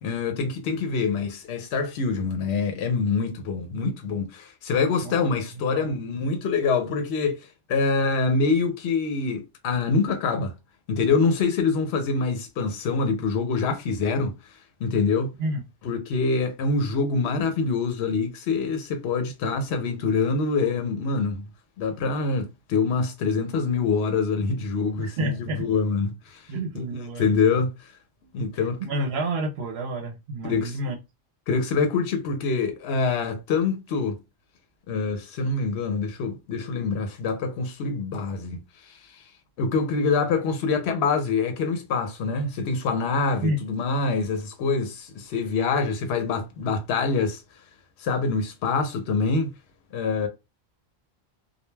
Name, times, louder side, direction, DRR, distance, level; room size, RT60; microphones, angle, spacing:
voice 1, 0.0-10.5 10.9-15.3 15.8-21.5 21.8-27.9 28.3-28.8 30.4-30.8 31.5-34.2 34.9-39.2 39.6-47.4 48.0-49.5 49.9-50.3, left 4 dB, 80° left, 0.9 m, -25 dB
voice 2, 25.0-25.6 26.5-27.3 28.8-31.0 43.4-43.6, right 1 dB, 75° right, 0.8 m, -29 dB
2.2 x 2.2 x 3.1 m
omnidirectional pair, 1.1 m